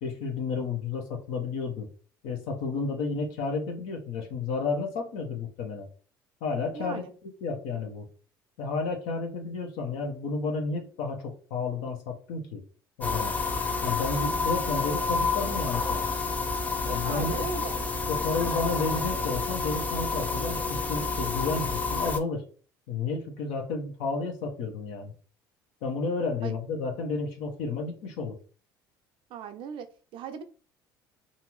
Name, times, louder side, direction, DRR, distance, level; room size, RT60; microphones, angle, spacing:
voice 1, 0.0-1.9 2.2-5.9 6.4-7.0 7.4-8.1 8.6-12.6 13.0-13.3 13.8-16.0 16.8-17.4 18.1-22.4 22.9-25.1 25.8-28.4, left 4 dB, 70° left, 0.7 m, -31 dB
voice 2, 6.7-7.1 17.0-17.8 26.4-26.5 29.3-30.4, right 7 dB, 55° right, 0.5 m, -38 dB
sound 1, 13.0-22.2, left 4 dB, 15° left, 0.6 m, -29 dB
2.7 x 2.5 x 3.0 m
hypercardioid pair, 65°, 10 cm